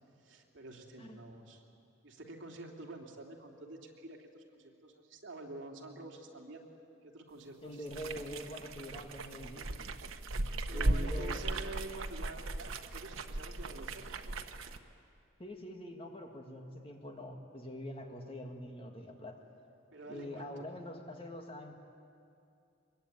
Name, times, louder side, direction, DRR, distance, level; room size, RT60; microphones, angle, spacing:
voice 1, 0.2-1.6 2.0-6.6 7.0-7.9 10.7-14.3 19.9-20.7, right 2 dB, 65° right, 0 dB, 3.0 m, -48 dB
voice 2, 7.6-9.7 10.7-11.4 15.4-19.4 20.1-21.7, equal, 25° left, 3 dB, 1.9 m, -44 dB
sound 1, 7.9-14.8, right 2 dB, 85° right, 1.2 m, -37 dB
24.0 x 22.5 x 9.4 m, 2.5 s
head